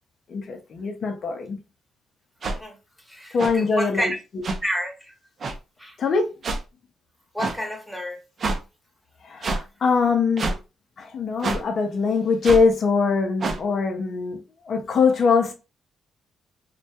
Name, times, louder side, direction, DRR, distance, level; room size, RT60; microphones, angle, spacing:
voice 1, 0.3-1.6 3.3-4.1 6.0-6.4 9.2-10.6 11.0-15.5, left 4 dB, 55° left, 0.5 m, -22 dB
sound 1, 2.4-2.6 3.4-3.5 4.4-4.6 5.4-5.6 6.4-6.6 7.4-7.6 8.4-8.6 9.4-9.6 10.4-10.6 11.4-11.6 12.4-12.6 13.4-13.6, right 3 dB, 50° right, 0.5 m, -26 dB
voice 2, 3.1-4.2 4.6-5.1 5.8-6.0 7.3-8.2, equal, ahead, 0.9 m, -29 dB
2.2 x 2.1 x 2.7 m
supercardioid pair, 60°, 0 cm